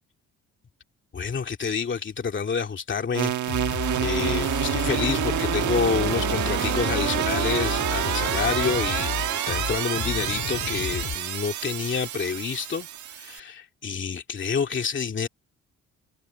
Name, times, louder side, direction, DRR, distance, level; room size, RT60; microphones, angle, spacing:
voice 1, 1.1-3.7 4.0-15.3, left 6 dB, 40° left, 2.4 m, -28 dB
sound 1, 3.1-13.4, right 12 dB, 75° right, 1.6 m, -28 dB
sound 2, 3.5-11.2, left 8 dB, 55° left, 2.6 m, -32 dB
open air
cardioid pair, 90°, 30 cm